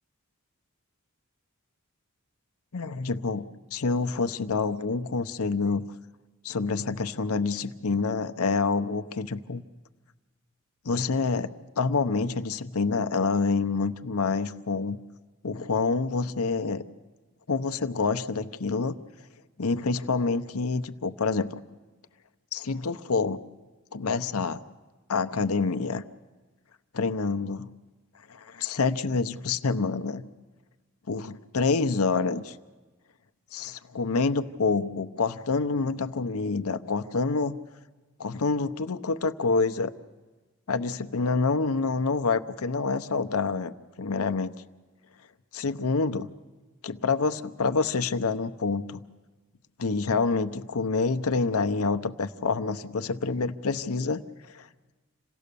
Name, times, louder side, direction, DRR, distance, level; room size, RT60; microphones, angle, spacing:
voice 1, 2.7-5.8 6.4-9.6 10.8-15.0 15.4-16.8 17.5-19.0 19.6-21.6 22.5-23.4 23.9-24.6 25.1-26.0 26.9-27.7 28.3-30.2 31.1-32.6 33.5-37.6 38.2-39.9 40.7-44.5 45.5-46.3 46.8-49.0 49.8-54.2 54.5-54.7, left 4 dB, 85° left, 10 dB, 0.8 m, -27 dB
27.5 x 17.0 x 6.9 m, 1.3 s
head